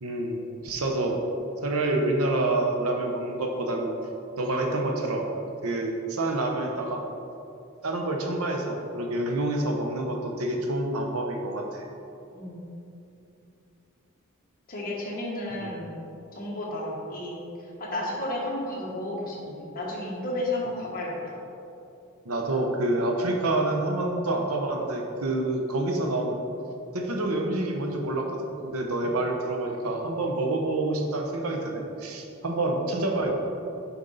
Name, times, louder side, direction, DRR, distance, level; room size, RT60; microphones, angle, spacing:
voice 1, 0.0-1.2 1.6-3.9 4.4-5.2 5.6-7.0 7.8-11.8 15.5-15.8 22.2-26.4 26.9-33.3, right 2 dB, 80° right, 2 dB, 0.8 m, -27 dB
voice 2, 14.7-15.9 16.3-17.4 17.8-21.3 29.0-29.1, left 1 dB, 45° left, -3 dB, 1.4 m, -32 dB
6.9 x 5.2 x 4.0 m, 2.8 s
head